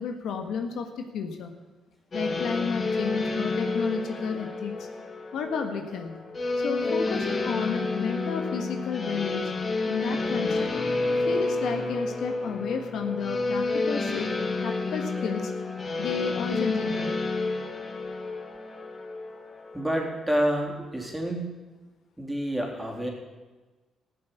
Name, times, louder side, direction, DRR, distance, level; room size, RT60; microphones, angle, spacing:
voice 1, 0.0-1.6 2.1-4.9 5.3-6.2 6.6-9.5 9.9-10.7 11.3-14.3 14.6-15.5 16.0-17.2, left 6 dB, 75° left, 5 dB, 1.6 m, -31 dB
sound 1, 2.1-20.2, left 3 dB, 40° left, 2.1 m, -30 dB
voice 2, 19.7-21.5 22.2-23.1, right 1 dB, 5° right, -1 dB, 3.5 m, -28 dB
15.0 x 7.8 x 8.3 m, 1.2 s
cardioid pair, 90°, 0 cm